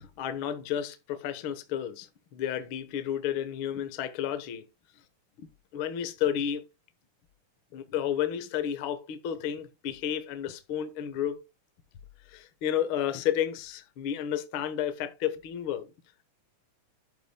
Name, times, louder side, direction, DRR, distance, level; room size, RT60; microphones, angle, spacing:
voice 1, 0.0-4.6 5.4-5.5 5.7-6.6 7.7-11.4 12.3-15.9, left 10 dB, 65° left, 1.4 m, -31 dB
11.5 x 8.4 x 2.2 m
omnidirectional pair, 3.8 m